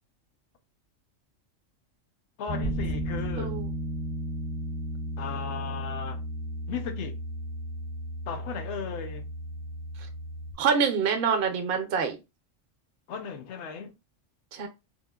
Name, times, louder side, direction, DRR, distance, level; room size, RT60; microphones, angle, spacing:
voice 1, 2.4-3.5 5.2-6.2 6.7-7.2 8.3-9.2 13.1-13.9, left 6 dB, 70° left, 0.9 m, -36 dB
Piano, 2.5-10.5, right 1 dB, 15° left, 0.4 m, -35 dB
sound 1, 2.6-5.2, equal, 90° left, 1.2 m, -38 dB
voice 2, 3.4-3.7 10.6-12.2 14.5-14.7, right 6 dB, 60° right, 0.7 m, -26 dB
3.6 x 2.0 x 2.2 m
omnidirectional pair, 1.3 m